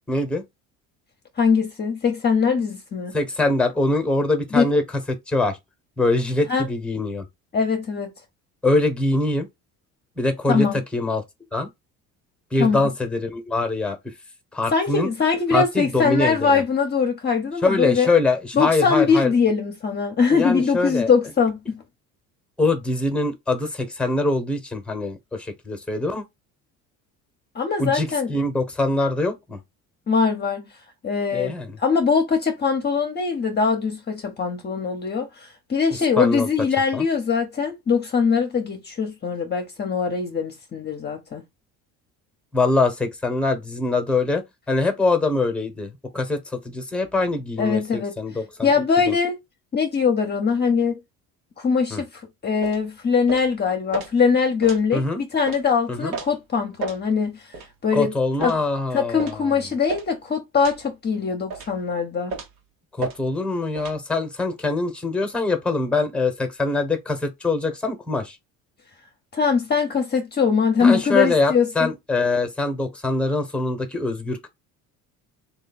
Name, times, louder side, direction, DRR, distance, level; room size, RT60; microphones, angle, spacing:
voice 1, 0.1-0.4 3.1-4.8 5.3-5.6 6.0-7.2 8.6-9.5 10.2-10.7 10.9-11.2 11.5-11.7 12.5-14.1 14.5-15.1 15.5-16.6 17.6-19.3 20.3-21.1 22.6-26.2 27.8-29.6 31.3-31.8 36.2-36.5 36.9-37.0 42.5-48.7 49.1-49.2 51.9-52.0 54.9-55.2 55.9-56.2 57.9-59.6 63.0-68.4 70.8-74.5, left 2 dB, 5° left, 1.0 m, -23 dB
voice 2, 1.4-3.1 4.5-4.6 6.5-6.7 7.5-8.1 10.5-10.8 12.6-12.9 14.7-18.1 18.5-21.8 27.5-28.3 30.1-30.6 31.0-31.5 31.8-41.4 47.6-48.1 48.6-49.4 49.7-51.0 51.6-57.5 57.8-58.1 58.4-58.6 58.9-62.3 69.3-71.9, left 5 dB, 30° left, 0.7 m, -22 dB
sound 1, 52.6-52.8 53.3-53.5 53.9-54.1 54.6-54.8 55.5-55.6 56.1-56.3 56.8-57.0 57.5-57.7 58.4-58.6 59.2-59.4 59.9-60.1 60.6-60.8 61.5-61.8 62.3-62.6 63.0-63.2 63.8-64.0, right 4 dB, 80° right, 1.1 m, -32 dB
3.0 x 2.4 x 4.1 m
cardioid pair, 105°, 33 cm